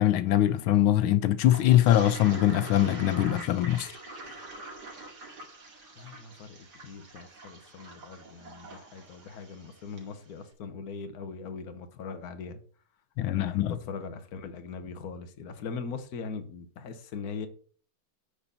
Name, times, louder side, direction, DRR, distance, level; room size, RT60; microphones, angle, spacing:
voice 1, 0.0-3.9 13.2-13.8, left 13 dB, 85° left, 1.4 m, -23 dB
Toilet flush, 1.5-10.1, right 2 dB, 55° right, 2.8 m, -44 dB
voice 2, 6.0-6.6 6.8-12.6 13.2-17.5, left 5 dB, 55° left, 1.4 m, -40 dB
10.0 x 4.1 x 6.8 m
omnidirectional pair, 2.2 m